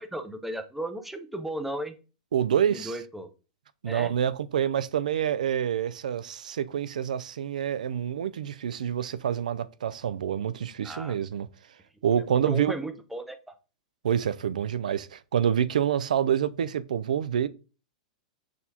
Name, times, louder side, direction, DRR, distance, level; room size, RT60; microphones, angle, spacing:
voice 1, 0.0-2.0 2.7-3.3 3.9-4.1 10.8-11.1 12.5-13.5, right 1 dB, 5° right, 0.4 m, -35 dB
voice 2, 2.3-2.9 3.8-11.5 12.0-12.7 14.0-17.5, right 9 dB, 90° right, 0.3 m, -27 dB
6.2 x 2.2 x 2.8 m
hypercardioid pair, 135°, 4 cm